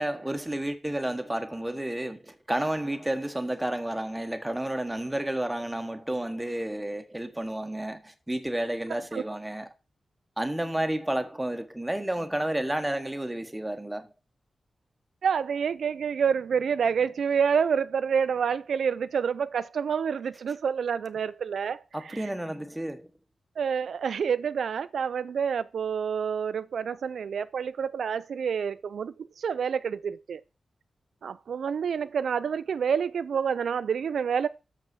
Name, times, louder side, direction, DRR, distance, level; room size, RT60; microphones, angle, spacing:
voice 1, 0.0-9.7 10.4-14.1 21.9-23.1, right 1 dB, 10° right, 1.1 m, -31 dB
voice 2, 15.2-22.3 23.6-30.4 31.2-34.5, right 7 dB, 85° right, 0.4 m, -28 dB
6.9 x 5.4 x 6.0 m
wide cardioid pair, 100°, 0 cm